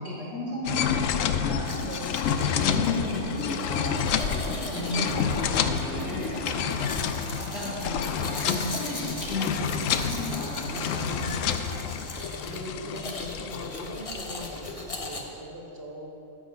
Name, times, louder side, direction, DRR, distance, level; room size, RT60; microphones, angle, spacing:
voice 1, 0.0-1.9 2.3-6.8 7.3-12.0, left 1 dB, 50° left, -8 dB, 3.1 m, -34 dB
sound 1, 0.7-14.6, left 7 dB, 80° left, 1.0 m, -29 dB
Domestic sounds home sounds, 1.6-15.2, left 2 dB, 30° left, 0.9 m, -39 dB
voice 2, 1.8-2.3 12.4-16.1, right 1 dB, 50° right, -2 dB, 1.7 m, -41 dB
sound 2, 2.5-11.1, right 8 dB, 70° right, 0.9 m, -43 dB
14.0 x 6.4 x 5.2 m, 2.7 s
omnidirectional pair, 1.4 m